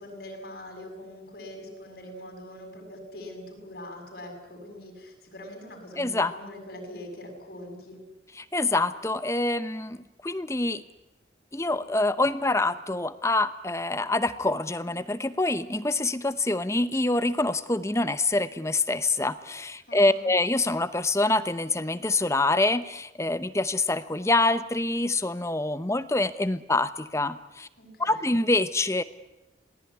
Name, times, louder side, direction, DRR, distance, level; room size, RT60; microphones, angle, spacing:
voice 1, 0.0-8.0 19.9-20.2 27.8-28.3, left 1 dB, 55° left, 4 dB, 7.0 m, -43 dB
voice 2, 6.0-6.3 8.4-10.0 10.2-10.8 11.5-27.7 28.0-29.0, left 2 dB, 15° left, 13 dB, 0.8 m, -26 dB
27.0 x 18.5 x 9.6 m, 0.94 s
head